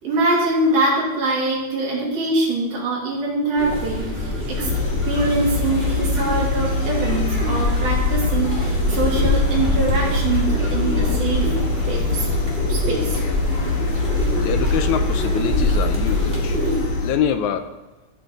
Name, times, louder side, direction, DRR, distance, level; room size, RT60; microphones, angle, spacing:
voice 1, 0.0-4.1 4.5-4.7 5.1-11.5 11.9-12.3 12.7-13.2, right 2 dB, 75° right, -4 dB, 4.0 m, -23 dB
sound 1, 3.6-16.9, left 1 dB, 20° right, 2.1 m, -24 dB
sound 2, 4.6-17.1, left 3 dB, 60° left, 2.2 m, -25 dB
voice 2, 14.4-16.6 17.0-17.7, left 8 dB, 75° left, 8 dB, 1.9 m, -24 dB
17.0 x 5.9 x 4.1 m, 1.1 s
omnidirectional pair, 3.6 m